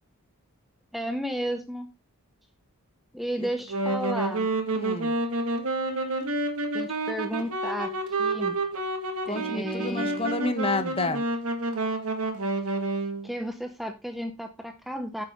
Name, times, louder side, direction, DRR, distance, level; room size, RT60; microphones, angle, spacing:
voice 1, 0.9-1.9 3.1-4.5 6.7-8.6 9.3-10.4 13.2-15.2, equal, ahead, 0.7 m, -33 dB
Wind instrument woodwind instrument, 3.6-13.3, right 2 dB, 75° right, 2.1 m, -29 dB
voice 2, 4.7-5.1 9.2-11.2, left 2 dB, 25° left, 1.1 m, -29 dB
9.7 x 7.7 x 3.7 m
head